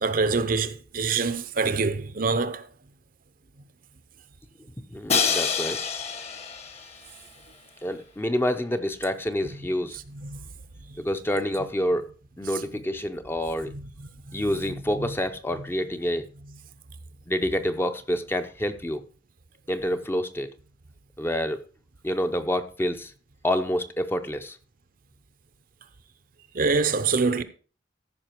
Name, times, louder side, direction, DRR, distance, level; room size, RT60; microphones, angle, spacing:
voice 1, 0.0-2.7 10.1-10.5 13.7-13.9 14.3-14.4 15.0-15.1 26.5-27.4, right 4 dB, 50° right, 0.7 m, -25 dB
voice 2, 4.9-5.8 7.8-10.0 11.0-12.1 12.4-13.7 14.3-16.2 17.3-19.0 19.7-20.5 21.2-21.6 22.0-23.1 23.4-24.6, equal, 10° left, 0.6 m, -27 dB
Crash cymbal, 5.1-7.1, left 6 dB, 35° left, 1.2 m, -27 dB
14.0 x 5.5 x 4.5 m
head